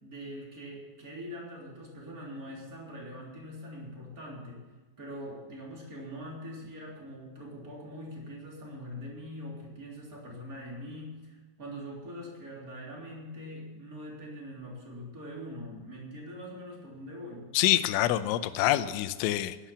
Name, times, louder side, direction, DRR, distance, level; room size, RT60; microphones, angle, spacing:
voice 1, 0.0-4.7 5.0-17.5, equal, 20° right, -2 dB, 3.0 m, -43 dB
voice 2, 17.5-19.6, left 14 dB, 80° left, 12 dB, 3.0 m, -26 dB
12.0 x 11.0 x 7.2 m, 1.3 s
omnidirectional pair, 5.7 m